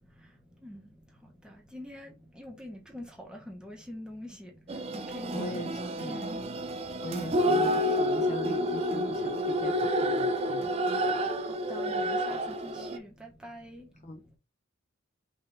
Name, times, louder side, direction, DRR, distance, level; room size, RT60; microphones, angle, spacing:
voice 1, 1.7-4.5 4.9-6.4 11.7-13.9, left 1 dB, 5° right, 1.3 m, -44 dB
sound 1, 4.7-13.0, equal, 30° right, 0.4 m, -29 dB
voice 2, 5.3-6.2 7.0-10.7 14.0-14.4, left 2 dB, 30° left, 0.5 m, -40 dB
5.4 x 3.7 x 2.7 m
head